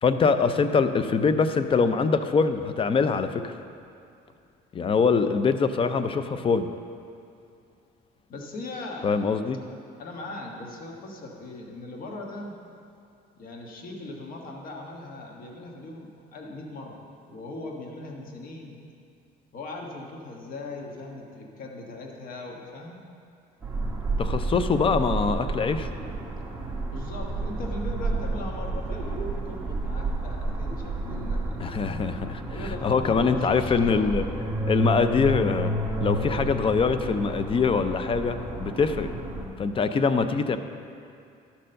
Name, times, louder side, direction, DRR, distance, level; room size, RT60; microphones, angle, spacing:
voice 1, 0.0-3.5 4.7-6.7 9.0-9.6 24.2-25.9 31.6-32.4 32.8-34.3 34.6-35.7 36.0-39.1 39.6-40.6, left 5 dB, 30° left, 10 dB, 0.5 m, -23 dB
voice 2, 8.3-9.1 10.0-12.5 13.4-17.0 17.3-18.8 19.5-23.1 26.9-31.9 32.5-34.4, left 2 dB, 55° left, 0 dB, 1.4 m, -39 dB
sound 1, 23.6-39.5, right 2 dB, 10° right, 1.4 m, -31 dB
12.0 x 4.4 x 6.4 m, 2.5 s
cardioid pair, 110°, 17 cm